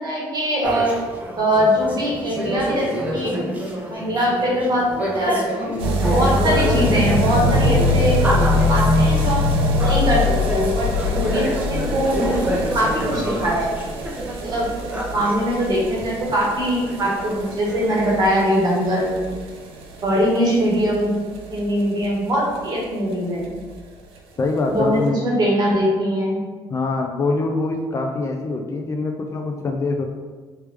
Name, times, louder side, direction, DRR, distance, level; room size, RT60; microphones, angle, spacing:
voice 1, 0.0-1.0 1.4-3.4 3.9-5.8 6.1-8.2 8.7-9.4 9.7-12.4 12.7-13.7 14.4-14.7 15.1-19.2 20.0-23.5 24.7-26.4, equal, 45° right, -4 dB, 1.3 m, -22 dB
sound 1, 0.6-15.6 16.1-16.2 16.4-19.1, equal, 15° right, 0.7 m, -28 dB
sound 2, 5.8-22.6 22.8-22.9 23.1-23.2 23.4-23.5 23.8-23.9 24.6-24.7, left 2 dB, 70° right, 0.6 m, -23 dB
voice 2, 24.4-25.2 26.7-30.0, left 3 dB, 30° left, 3 dB, 0.4 m, -24 dB
3.3 x 3.2 x 3.3 m, 1.4 s
cardioid pair, 115°, 10 cm